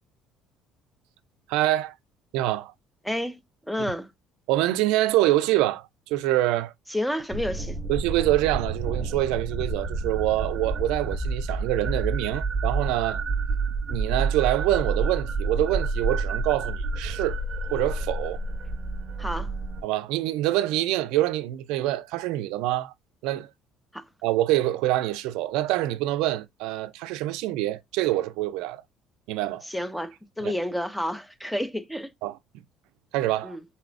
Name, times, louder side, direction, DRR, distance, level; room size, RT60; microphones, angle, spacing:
voice 1, 1.5-1.9 2.3-2.7 4.5-6.7 7.9-13.2 13.9-17.4 17.7-18.4 19.8-22.9 23.2-23.5 24.2-28.8 29.3-29.6 30.4-30.5 32.2-32.4 33.1-33.6, right 15 dB, 85° right, 0.3 m, -25 dB
voice 2, 3.0-4.1 6.9-7.8 19.2-19.5 23.9-24.1 29.6-32.1 33.4-33.6, left 1 dB, ahead, 0.4 m, -30 dB
sound 1, 7.3-19.8, right 3 dB, 25° right, 0.9 m, -29 dB
3.9 x 2.0 x 2.4 m
cardioid pair, 160°, 0 cm